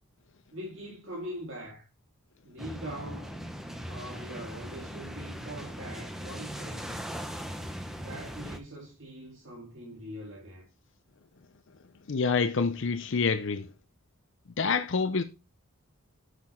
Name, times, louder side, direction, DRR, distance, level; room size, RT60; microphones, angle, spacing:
voice 1, 0.5-1.9 2.4-3.4 3.8-6.8 8.0-10.7, right 1 dB, 60° right, 2.3 m, -42 dB
sound 1, 2.6-8.6, equal, ahead, 0.8 m, -39 dB
voice 2, 12.1-13.7 14.6-15.2, left 5 dB, 55° left, 0.5 m, -27 dB
7.9 x 6.6 x 4.4 m
head